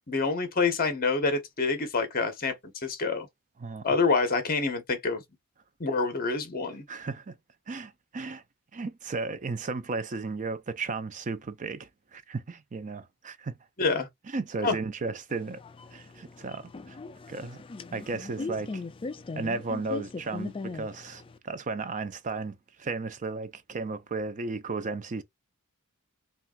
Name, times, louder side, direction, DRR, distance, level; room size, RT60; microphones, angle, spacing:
voice 1, 0.1-3.3 3.8-5.2 5.8-6.8 13.8-14.1 14.6-14.8, left 4 dB, 40° left, 1.1 m, -27 dB
voice 2, 3.6-4.0 6.9-7.4 7.7-8.4 8.7-13.5 14.3-15.6 15.9-17.0 17.3-17.6 17.9-18.8 19.4-25.2, right 3 dB, 35° right, 0.5 m, -34 dB
sound 1, 15.3-21.4, left 3 dB, 25° left, 0.4 m, -39 dB
5.6 x 2.5 x 2.3 m
head